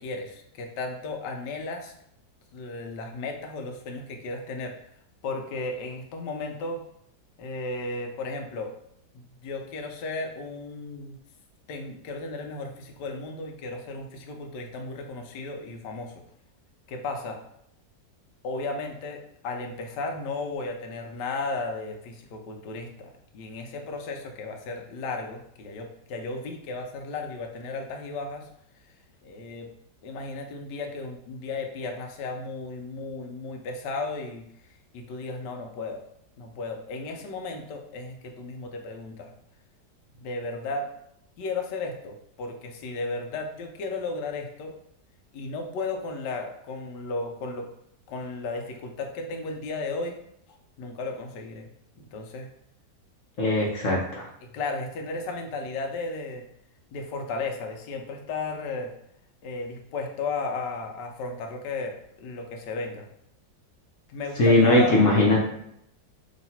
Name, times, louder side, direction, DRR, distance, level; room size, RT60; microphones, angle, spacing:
voice 1, 0.0-1.9 2.5-4.8 5.2-6.8 7.4-8.7 9.1-11.2 11.7-16.1 16.9-17.4 18.4-28.5 29.2-29.7 30.0-34.5 34.9-36.0 36.4-39.3 40.2-40.9 41.4-44.7 45.3-47.7 48.1-50.2 50.8-51.7 52.0-52.5 53.6-53.7 54.4-56.4 56.9-58.9 59.4-63.1 64.1-65.1, left 3 dB, 75° left, 3 dB, 1.2 m, -34 dB
voice 2, 53.4-54.3 64.4-65.4, left 1 dB, 55° left, -3 dB, 0.9 m, -20 dB
3.1 x 2.9 x 4.1 m, 0.75 s
omnidirectional pair, 2.0 m